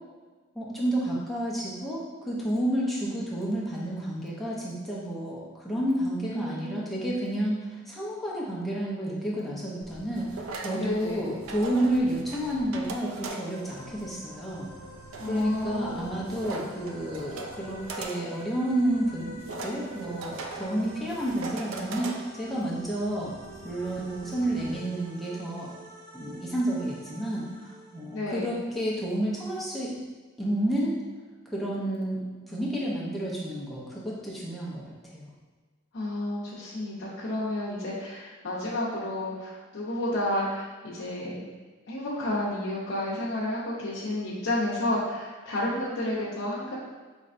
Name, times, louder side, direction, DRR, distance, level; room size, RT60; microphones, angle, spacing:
voice 1, 0.5-10.3 10.6-14.7 15.2-23.3 23.6-25.8 26.1-29.9 30.4-30.9 31.5-35.3, right 1 dB, ahead, -7 dB, 0.7 m, -30 dB
voice 2, 6.3-7.1 10.7-11.3 15.1-16.3 28.1-28.5 35.9-41.4 41.9-46.7, left 1 dB, 65° left, -8 dB, 0.7 m, -31 dB
sound 1, 9.8-24.8, right 3 dB, 80° right, 0.4 m, -41 dB
sound 2, 13.4-28.7, right 1 dB, 60° right, 0.9 m, -48 dB
5.2 x 3.2 x 2.6 m, 1.4 s
head